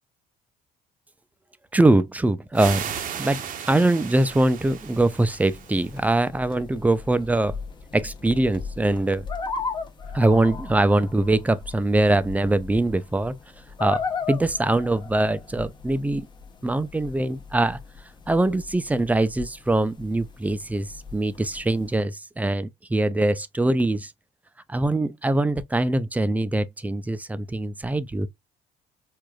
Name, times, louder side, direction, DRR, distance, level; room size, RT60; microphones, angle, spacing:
voice 1, 1.7-7.6 7.9-9.3 10.1-13.3 13.8-16.3 16.6-17.8 18.3-24.1 24.7-28.3, right 2 dB, 10° right, 0.4 m, -23 dB
sound 1, 2.5-6.2, right 8 dB, 55° right, 0.7 m, -35 dB
sound 2, 4.3-22.0, left 4 dB, 25° left, 0.7 m, -37 dB
4.7 x 2.5 x 2.2 m
cardioid pair, 110°, 17 cm